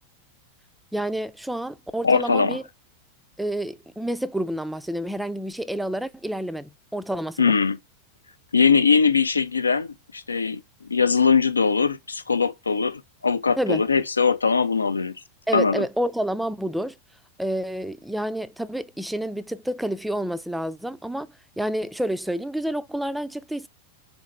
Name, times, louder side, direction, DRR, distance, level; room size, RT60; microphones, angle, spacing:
voice 1, 0.9-2.6 3.4-7.5 13.6-13.8 15.5-17.0 17.4-21.3 21.6-23.7, right 1 dB, 5° right, 0.3 m, -29 dB
voice 2, 2.0-2.6 7.4-7.8 8.5-15.1 15.5-15.8, left 5 dB, 75° left, 0.4 m, -21 dB
3.8 x 3.6 x 3.2 m
figure-of-eight pair, 90°, 0 cm